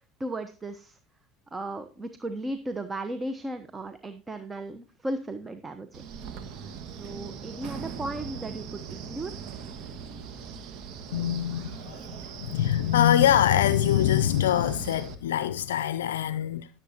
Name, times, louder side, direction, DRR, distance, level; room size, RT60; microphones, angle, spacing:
voice 1, 0.2-1.0 1.5-6.0 6.6-9.4, right 1 dB, 20° right, 1.0 m, -36 dB
Wind, 5.9-15.1, right 7 dB, 60° right, 1.6 m, -40 dB
voice 2, 11.1-12.0 12.3-16.7, left 11 dB, 85° left, 0.4 m, -24 dB
17.0 x 7.7 x 2.8 m
hypercardioid pair, 75°, 0 cm